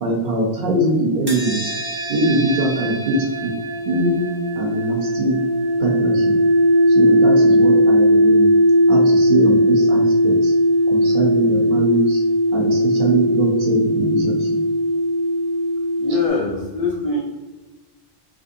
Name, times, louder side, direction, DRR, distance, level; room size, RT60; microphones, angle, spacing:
voice 1, 0.0-1.7 2.1-3.5 3.9-4.2 4.5-5.4 5.8-6.3 6.9-8.5 8.9-10.5 10.9-12.2 12.5-14.6, right 2 dB, 55° right, -1 dB, 0.8 m, -22 dB
sound 1, 1.3-16.3, equal, 20° right, 0.9 m, -18 dB
voice 2, 16.0-17.2, left 2 dB, 65° left, -2 dB, 0.3 m, -22 dB
3.4 x 2.5 x 2.5 m, 1.2 s
omnidirectional pair, 1.2 m